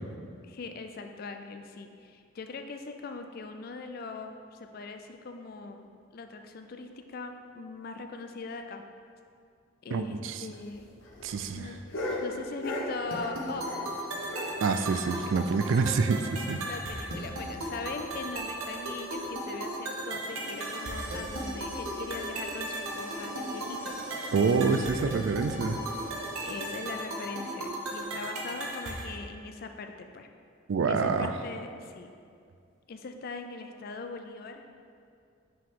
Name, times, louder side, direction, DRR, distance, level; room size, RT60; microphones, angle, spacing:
voice 1, 0.4-8.8 9.8-10.2 10.4-10.9 11.5-11.8 12.2-13.7 16.6-23.9 26.1-30.3 30.9-32.1 32.9-34.6, left 4 dB, 45° left, 6 dB, 0.3 m, -41 dB
voice 2, 9.9-10.4 11.2-11.7 14.6-16.6 24.3-25.8 30.7-31.3, right 4 dB, 65° right, 9 dB, 0.3 m, -27 dB
sound 1, 10.5-14.0 14.2-16.2 16.5-16.6 16.9-17.0 17.4-17.5 18.1-18.4 19.2-19.3, left 1 dB, 65° left, 0.9 m, -38 dB
sound 2, 13.1-29.1, right 1 dB, 90° right, 0.9 m, -36 dB
sound 3, 20.3-28.4 30.5-30.6, right 1 dB, 20° right, 1.2 m, -46 dB
5.9 x 4.8 x 3.6 m, 2.3 s
head